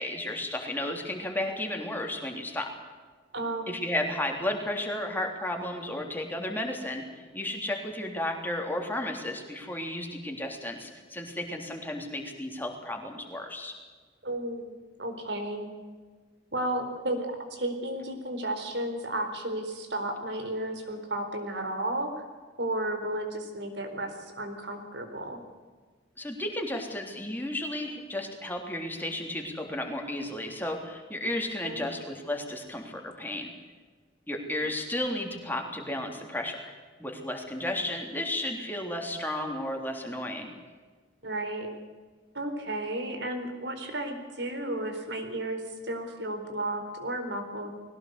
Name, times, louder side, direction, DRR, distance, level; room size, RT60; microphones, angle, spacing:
voice 1, 0.0-2.7 3.7-13.7 26.2-33.5 34.3-36.7 37.0-40.5, left 1 dB, 10° left, 2 dB, 3.5 m, -33 dB
voice 2, 3.3-3.7 14.2-15.7 16.5-22.1 22.6-25.4 31.6-31.9 41.2-41.7 42.3-47.7, right 1 dB, 65° right, 6 dB, 4.3 m, -33 dB
21.0 x 18.0 x 8.3 m, 1.4 s
head